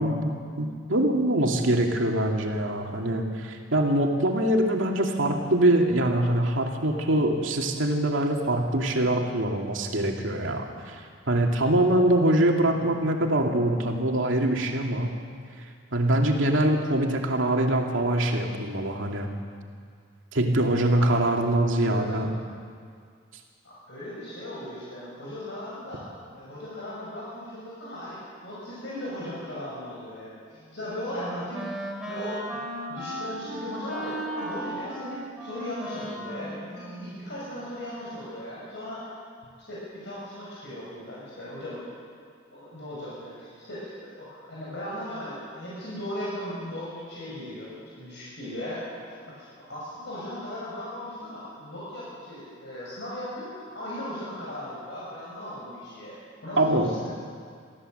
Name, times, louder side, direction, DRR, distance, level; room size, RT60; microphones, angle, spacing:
voice 1, 0.0-15.2 15.9-19.3 20.3-22.3 56.6-57.0, right 1 dB, 80° right, 1 dB, 2.5 m, -24 dB
voice 2, 23.6-26.0 26.3-31.7 32.1-32.4 32.9-39.1 39.7-41.8 42.5-43.9 44.2-57.1, left 1 dB, 60° left, -7 dB, 6.0 m, -37 dB
Wind instrument woodwind instrument, 30.6-37.7, right 1 dB, 5° right, 3.2 m, -37 dB
24.0 x 15.0 x 7.9 m, 2.1 s
head